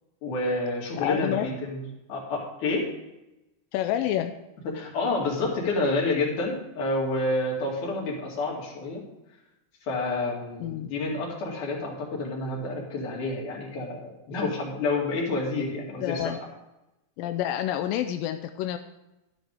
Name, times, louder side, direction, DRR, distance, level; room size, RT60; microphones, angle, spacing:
voice 1, 0.2-1.8 2.1-2.9 4.7-9.0 9.8-16.3, left 2 dB, 65° left, -2 dB, 3.8 m, -29 dB
voice 2, 1.0-1.5 3.7-4.4 10.6-10.9 16.0-16.4 17.2-18.8, left 11 dB, 90° left, 7 dB, 2.3 m, -28 dB
12.0 x 11.0 x 3.6 m, 0.96 s
omnidirectional pair, 4.0 m